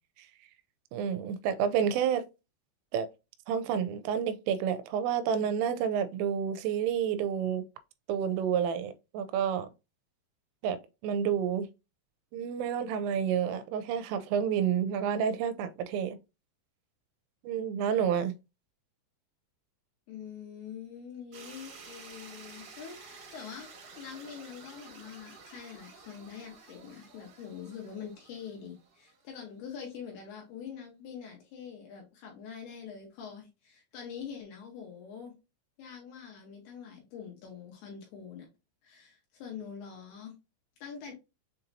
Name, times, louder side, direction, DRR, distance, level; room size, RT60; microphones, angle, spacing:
voice 1, 0.9-2.2 2.9-3.1 3.5-7.7 8.1-9.7 10.6-10.8 11.0-11.7 12.3-16.2 17.4-18.3, right 8 dB, 90° right, 3.1 m, -29 dB
voice 2, 20.1-35.3 35.8-38.5 38.8-40.3 40.8-41.1, left 7 dB, 70° left, 2.6 m, -44 dB
sound 1, 21.3-29.3, right 4 dB, 60° right, 2.1 m, -51 dB
7.1 x 2.8 x 2.6 m
omnidirectional pair, 5.6 m